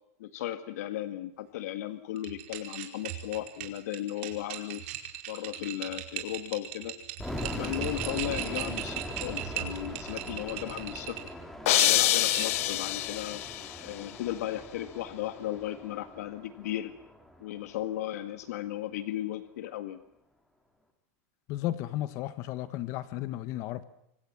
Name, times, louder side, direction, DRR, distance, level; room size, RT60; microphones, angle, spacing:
voice 1, 0.2-4.8 5.3-6.9 7.4-11.2 11.7-13.4 13.8-16.9 17.4-20.0, left 13 dB, 80° left, 10 dB, 1.8 m, -36 dB
sound 1, 2.2-11.3 11.7-12.7, right 12 dB, 55° right, 4.8 m, -38 dB
sound 2, 7.2-18.1, equal, 5° left, 3.1 m, -41 dB
sound 3, 11.7-13.7, left 16 dB, 65° left, 1.4 m, -25 dB
voice 2, 21.5-23.8, left 14 dB, 40° left, 13 dB, 1.2 m, -34 dB
27.5 x 24.0 x 7.4 m, 0.80 s
supercardioid pair, 170°, 8 cm